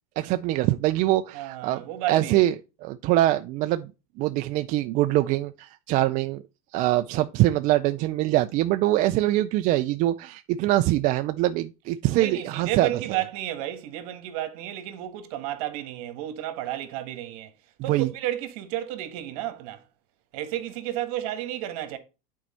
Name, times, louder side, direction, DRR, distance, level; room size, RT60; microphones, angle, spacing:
voice 1, 0.2-1.8 2.1-2.5 2.8-3.9 4.2-6.4 6.7-12.9 17.9-18.1, right 15 dB, 40° right, 0.4 m, -23 dB
voice 2, 1.3-2.5 12.2-17.5 17.8-19.8 20.3-22.0, right 13 dB, 65° right, 1.5 m, -32 dB
8.6 x 4.6 x 4.2 m
supercardioid pair, 130°, 20 cm